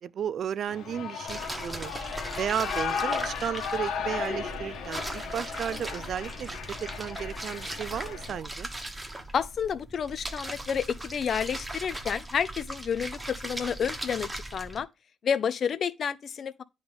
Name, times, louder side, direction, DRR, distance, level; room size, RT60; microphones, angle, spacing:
voice 1, 0.0-1.9 2.4-8.7, right 9 dB, 60° right, 0.3 m, -34 dB
Shout / Cheering, 0.7-8.4, left 6 dB, 90° left, 1.5 m, -35 dB
sound 1, 1.3-14.8, right 1 dB, 15° right, 1.2 m, -39 dB
voice 2, 9.3-14.9 15.2-16.6, left 7 dB, 55° left, 0.6 m, -30 dB
9.5 x 3.9 x 3.5 m
cardioid pair, 90°, 0 cm